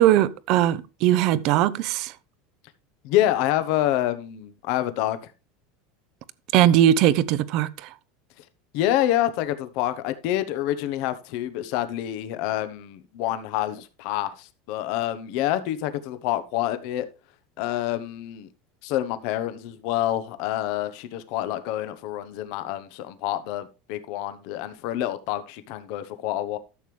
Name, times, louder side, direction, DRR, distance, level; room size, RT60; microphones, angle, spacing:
voice 1, 0.0-2.1 6.5-7.9, right 12 dB, 55° right, 0.7 m, -20 dB
voice 2, 3.0-5.3 8.7-17.1 17.6-18.5 18.8-26.6, left 13 dB, 65° left, 1.0 m, -27 dB
13.0 x 6.9 x 3.3 m
supercardioid pair, 135°, 0 cm